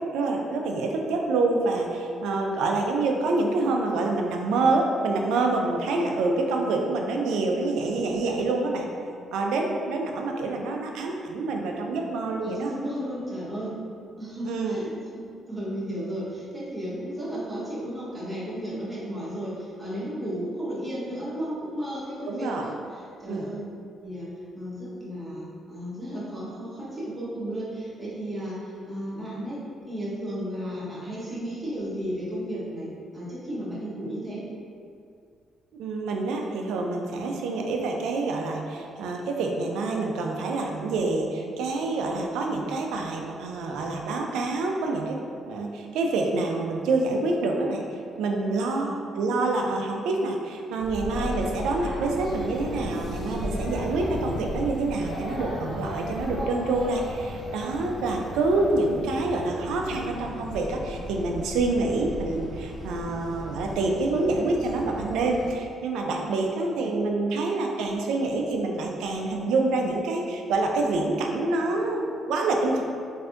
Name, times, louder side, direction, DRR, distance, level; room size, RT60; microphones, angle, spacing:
voice 1, 0.1-8.9 9.3-12.7 14.5-14.8 22.2-22.7 23.3-23.5 35.8-45.2 45.5-72.8, right 3 dB, 90° right, 1 dB, 0.3 m, -27 dB
voice 2, 12.4-13.7 14.2-14.9 15.1-23.6 24.0-24.3 24.5-29.6 29.8-32.9 33.1-34.4 48.6-49.0, equal, 20° right, -8 dB, 1.1 m, -34 dB
sound 1, 50.8-65.5, left 1 dB, 80° left, 0.8 m, -36 dB
3.3 x 2.6 x 2.5 m, 2.4 s
cardioid pair, 90°, 0 cm